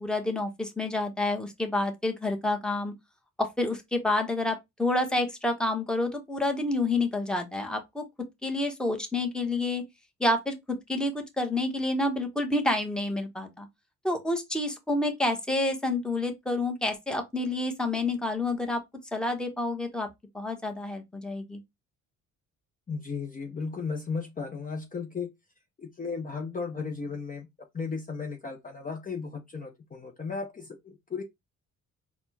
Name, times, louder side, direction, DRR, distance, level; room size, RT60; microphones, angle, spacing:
voice 1, 0.0-2.9 3.4-8.0 8.4-9.8 10.2-13.7 14.0-18.8 19.1-20.1 20.3-21.6, left 2 dB, 5° left, 1.0 m, -28 dB
voice 2, 22.9-25.3 25.8-27.5 27.7-31.2, left 5 dB, 25° left, 0.8 m, -35 dB
4.3 x 2.2 x 4.0 m
cardioid pair, 90°, 30 cm